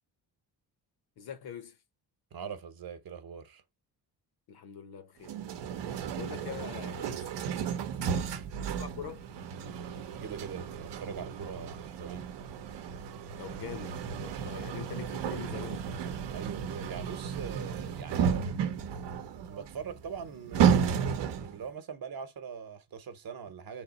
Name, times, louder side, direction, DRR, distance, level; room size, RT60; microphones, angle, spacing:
voice 1, 1.2-1.8 4.5-5.4 6.1-7.3 8.6-9.3 13.4-15.9, left 8 dB, 65° left, 0.9 m, -43 dB
voice 2, 2.3-3.6 8.0-8.5 10.2-12.2 16.3-18.5 19.4-23.8, right 6 dB, 60° right, 0.9 m, -42 dB
sound 1, 5.2-21.6, right 7 dB, 85° right, 0.7 m, -33 dB
3.4 x 2.9 x 4.0 m
cardioid pair, 110°, 41 cm